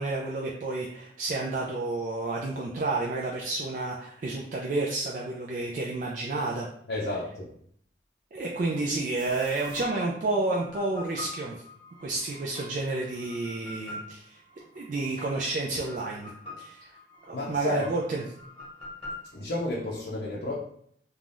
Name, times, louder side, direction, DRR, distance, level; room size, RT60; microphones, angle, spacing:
voice 1, 0.0-6.7 8.3-11.6 12.0-14.4 14.8-16.3 16.6-16.9 17.3-18.2, right 2 dB, 45° right, -2 dB, 0.3 m, -30 dB
voice 2, 6.9-7.5 17.3-17.9 19.3-20.5, left 2 dB, 60° left, -4 dB, 0.5 m, -32 dB
sound 1, 9.2-20.0, left 1 dB, 30° left, 1.0 m, -45 dB
3.2 x 2.3 x 2.5 m, 0.65 s
head